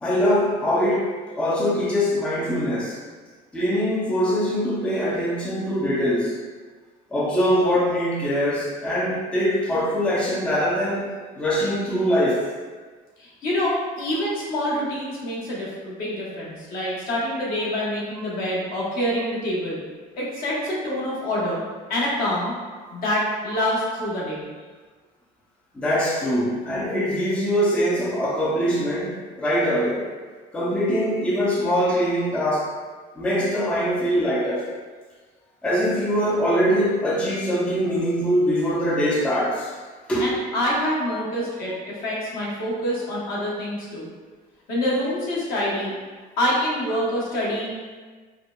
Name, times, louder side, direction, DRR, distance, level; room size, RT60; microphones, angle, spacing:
voice 1, 0.0-3.0 3.5-6.4 7.1-11.1 11.4-12.5 25.8-30.1 30.5-32.7 33.2-34.7 35.6-39.7 40.1-40.3, equal, 5° left, -5 dB, 0.4 m, -23 dB
voice 2, 13.2-19.8 20.2-21.6 21.9-22.5 22.9-24.4 40.2-44.1 44.7-45.9 46.4-47.7, left 1 dB, 55° left, -5 dB, 1.1 m, -26 dB
4.8 x 2.1 x 2.3 m, 1.4 s
cardioid pair, 145°, 17 cm